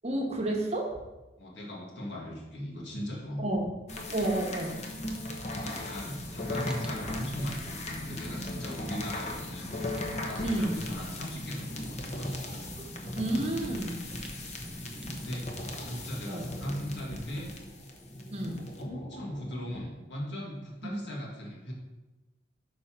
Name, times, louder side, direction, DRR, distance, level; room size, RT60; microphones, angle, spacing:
voice 1, 0.0-0.9 3.4-3.6 4.1-4.8 10.4-10.7 13.1-14.1 16.3-16.5 18.3-18.6 20.8-20.9, right 1 dB, 35° right, 0 dB, 0.9 m, -30 dB
voice 2, 1.4-3.4 5.5-9.7 10.1-12.3 15.1-15.5 15.8-17.5 18.8-21.7, equal, 75° left, -3 dB, 1.9 m, -38 dB
sound 1, 3.9-19.8, left 2 dB, 35° left, 0.8 m, -38 dB
Fire, 6.0-15.8, equal, 5° right, 0.5 m, -45 dB
5.3 x 4.2 x 5.9 m, 1.1 s
head